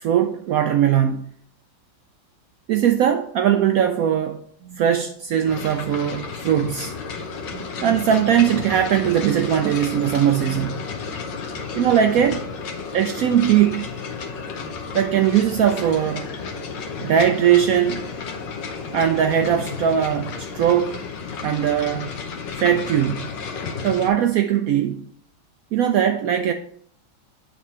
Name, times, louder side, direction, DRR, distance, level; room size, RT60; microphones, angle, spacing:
voice 1, 0.0-1.3 2.7-6.9 7.5-10.8 11.7-12.5 12.9-13.9 14.9-16.3 17.0-18.1 18.9-21.0 21.4-22.1 22.6-23.3 23.8-25.0 25.7-26.5, right 9 dB, 75° right, 0.8 m, -20 dB
sound 1, 5.5-24.1, left 5 dB, 80° left, 1.6 m, -32 dB
8.4 x 4.6 x 4.2 m
omnidirectional pair, 1.9 m